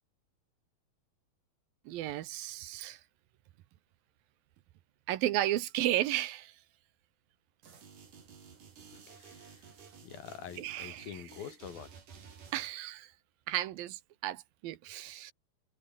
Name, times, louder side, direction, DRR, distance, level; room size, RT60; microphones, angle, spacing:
voice 1, 1.9-3.0 5.1-6.5 10.6-11.2 12.5-13.1 13.5-15.3, right 14 dB, 80° right, 2.8 m, -34 dB
sound 1, 7.6-12.7, right 6 dB, 60° right, 5.4 m, -53 dB
voice 2, 8.9-9.7 10.0-11.9, left 9 dB, 75° left, 4.1 m, -46 dB
open air
omnidirectional pair, 4.3 m